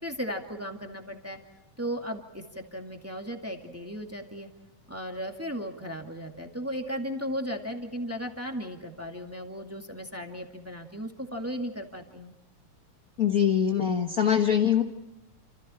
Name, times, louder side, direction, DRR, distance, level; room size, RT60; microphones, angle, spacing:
voice 1, 0.0-1.4 1.8-4.5 4.9-12.3, equal, 5° right, 3 dB, 1.6 m, -36 dB
voice 2, 13.2-14.8, left 8 dB, 70° left, 4 dB, 0.8 m, -23 dB
29.5 x 27.5 x 4.4 m, 1.0 s
omnidirectional pair, 3.4 m